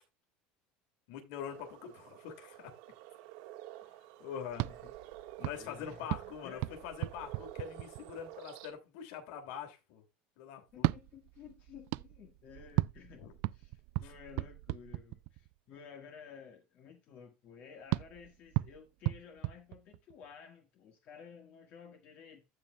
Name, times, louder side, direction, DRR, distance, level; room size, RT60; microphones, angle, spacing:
voice 1, 1.1-2.7 4.2-4.7 5.4-10.0 10.4-10.9 13.2-13.3 14.0-14.1, left 8 dB, 70° left, 2.6 m, -44 dB
sound 1, 1.5-8.7, right 14 dB, 80° right, 1.6 m, -51 dB
sound 2, 4.5-8.3 10.7-15.6 17.9-20.3, right 20 dB, 60° right, 0.3 m, -37 dB
voice 2, 4.6-4.9 5.6-6.1 6.4-6.8 10.7-13.2 13.5-22.5, left 7 dB, 40° left, 1.6 m, -53 dB
15.5 x 5.4 x 2.3 m
cardioid pair, 160°, 4 cm